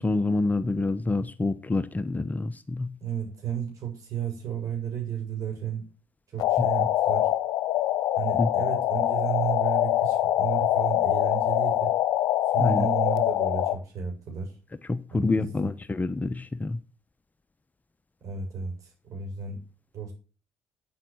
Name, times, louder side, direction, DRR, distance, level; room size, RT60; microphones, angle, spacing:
voice 1, 0.0-3.0 6.6-6.9 8.4-8.5 12.6-12.9 14.9-16.8, left 3 dB, 25° left, 1.1 m, -27 dB
voice 2, 3.0-5.8 6.3-7.3 8.2-11.9 12.5-14.6 15.1-15.7 18.2-19.6 19.9-20.1, right 8 dB, 55° right, 7.9 m, -33 dB
sound 1, 6.4-13.8, left 13 dB, 65° left, 1.1 m, -24 dB
9.2 x 8.3 x 8.0 m
hypercardioid pair, 55°, 7 cm